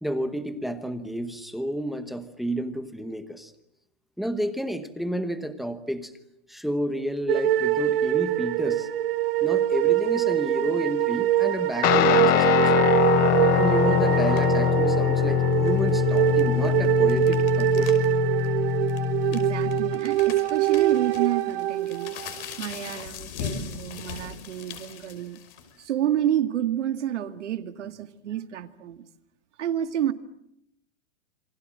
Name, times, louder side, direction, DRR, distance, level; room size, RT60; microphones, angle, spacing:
voice 1, 0.0-3.5 4.2-6.1 6.5-8.9 9.4-12.8 13.5-18.0, equal, ahead, 1.0 m, -31 dB
sound 1, 7.3-22.4, right 13 dB, 55° right, 1.2 m, -24 dB
Guitar, 11.8-20.0, left 12 dB, 25° left, 1.1 m, -23 dB
sound 2, 14.2-14.6 15.5-18.1 18.4-18.5 18.9-25.8, left 7 dB, 50° left, 5.6 m, -39 dB
voice 2, 19.3-22.1 22.6-25.4 25.8-29.0 29.6-30.1, right 11 dB, 80° right, 2.2 m, -29 dB
29.0 x 24.5 x 7.6 m
supercardioid pair, 165°, 35 cm